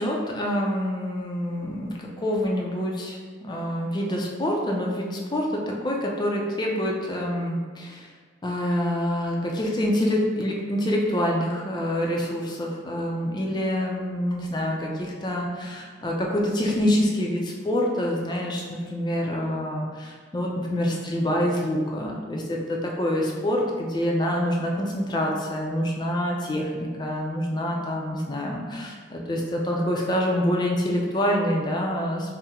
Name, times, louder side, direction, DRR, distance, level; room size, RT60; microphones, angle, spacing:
voice 1, 0.0-8.1 8.4-32.4, equal, 20° left, -1 dB, 0.4 m, -26 dB
4.3 x 2.0 x 3.6 m, 1.5 s
head